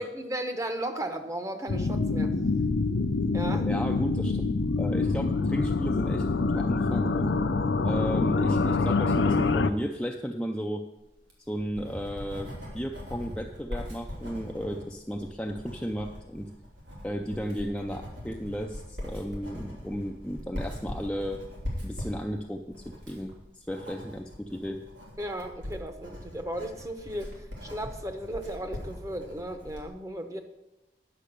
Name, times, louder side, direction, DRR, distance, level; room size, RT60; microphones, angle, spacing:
voice 1, 0.0-2.3 3.3-3.7 25.2-30.4, right 1 dB, 15° right, 7 dB, 0.8 m, -35 dB
sound 1, 1.7-9.7, left 3 dB, 80° left, 0.6 m, -26 dB
voice 2, 3.7-4.4 4.8-7.3 7.8-10.8 11.5-16.5 17.0-21.5 21.8-24.8, equal, 5° left, 2 dB, 0.5 m, -34 dB
Writing, 11.1-29.9, equal, 90° right, 3.1 m, -41 dB
9.9 x 6.3 x 6.7 m, 0.94 s
head